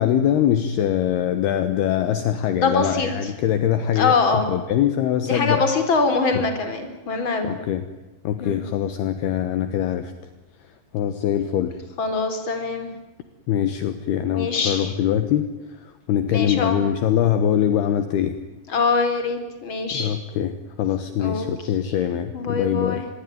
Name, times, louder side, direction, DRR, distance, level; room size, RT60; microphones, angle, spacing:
voice 1, 0.0-4.1 4.5-5.6 6.3-6.4 7.5-7.9 8.2-10.1 10.9-11.8 13.5-15.5 15.8-18.4 19.9-23.0, left 10 dB, 70° left, 10 dB, 3.1 m, -23 dB
voice 2, 2.5-3.3 3.9-4.5 5.2-7.5 8.4-8.6 12.0-12.9 14.3-14.9 16.3-16.9 18.7-20.2 21.2-22.1 22.3-23.1, left 4 dB, 30° left, 7 dB, 4.3 m, -24 dB
26.0 x 21.5 x 9.4 m, 1.1 s
omnidirectional pair, 5.1 m